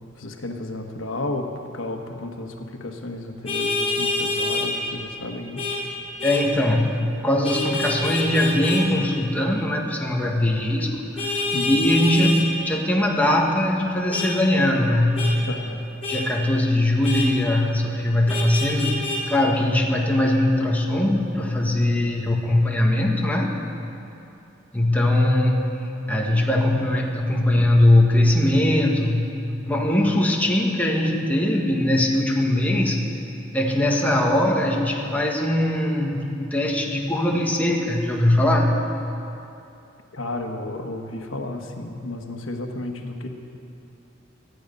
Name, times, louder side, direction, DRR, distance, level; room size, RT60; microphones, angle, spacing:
voice 1, 0.2-5.7 11.5-11.8 15.5-15.9 21.9-22.1 40.1-43.3, left 2 dB, 90° left, 4 dB, 1.3 m, -32 dB
Vehicle horn car horn honking, 3.5-4.7 5.6-5.8 6.2-6.4 7.4-8.8 11.2-12.5 14.1-14.3 15.2-15.3 16.0-16.2 17.0-17.3 18.3-19.2, left 3 dB, 30° left, 3.1 m, -26 dB
voice 2, 6.2-11.0 11.2-15.2 16.1-23.6 24.7-29.3 29.6-33.0 33.5-38.7, left 1 dB, 10° left, -1 dB, 1.5 m, -21 dB
19.0 x 13.0 x 5.4 m, 2.8 s
head